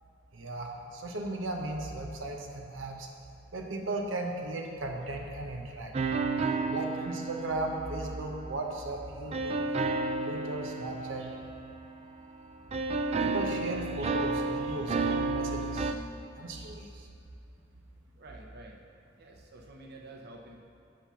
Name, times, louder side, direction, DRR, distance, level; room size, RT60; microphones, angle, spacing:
voice 1, 0.3-3.1 3.5-5.9 6.7-9.6 10.2-11.4 13.2-15.9 16.4-17.1, right 2 dB, 90° right, 1 dB, 0.9 m, -36 dB
sound 1, 5.9-8.6 9.3-12.4 12.7-15.9, right 3 dB, 35° right, 0.4 m, -32 dB
voice 2, 18.2-18.8 19.2-20.6, right 2 dB, 55° right, 0 dB, 0.9 m, -49 dB
8.7 x 5.7 x 5.8 m, 2.4 s
head